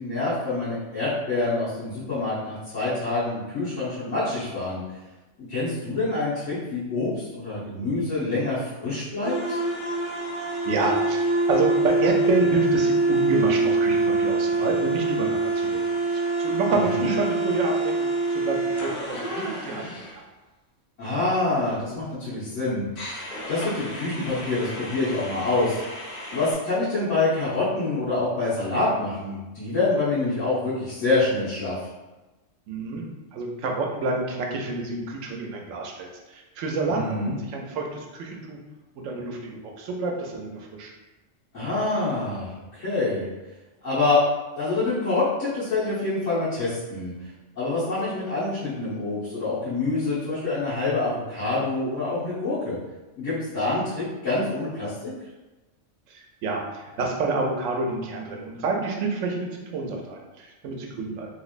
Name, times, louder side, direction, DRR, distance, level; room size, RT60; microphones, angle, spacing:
voice 1, 0.0-4.8 5.5-9.6 16.7-17.1 21.0-22.9 23.5-25.8 26.3-31.8 36.9-37.4 41.5-43.2 43.8-44.2 44.6-47.1 47.5-52.8 53.2-55.1, left 2 dB, 85° left, -14 dB, 1.6 m, -26 dB
sound 1, 9.2-20.1 23.0-26.5, right 2 dB, 50° left, 0.9 m, -25 dB
voice 2, 10.7-15.8 16.1-20.2 32.7-33.0 33.3-38.6 39.0-40.9 56.1-61.3, right 3 dB, 90° right, 1 dB, 1.0 m, -29 dB
3.3 x 3.0 x 2.5 m, 1.1 s
omnidirectional pair, 1.3 m